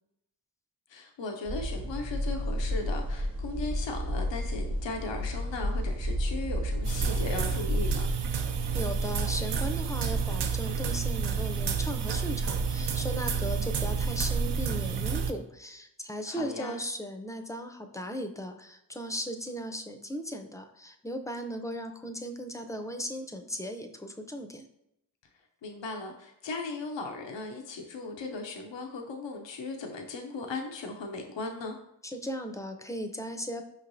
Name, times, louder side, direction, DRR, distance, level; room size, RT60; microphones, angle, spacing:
voice 1, 0.9-8.1 16.3-16.8 25.6-31.8, left 3 dB, 90° left, 3 dB, 0.6 m, -37 dB
sound 1, 1.5-8.1, equal, 35° right, 1.0 m, -32 dB
sound 2, 6.8-15.3, right 5 dB, 65° right, 0.5 m, -29 dB
voice 2, 8.7-24.7 32.0-33.6, equal, 10° left, 6 dB, 0.5 m, -37 dB
5.2 x 3.1 x 2.6 m, 0.80 s
cardioid pair, 45°, 43 cm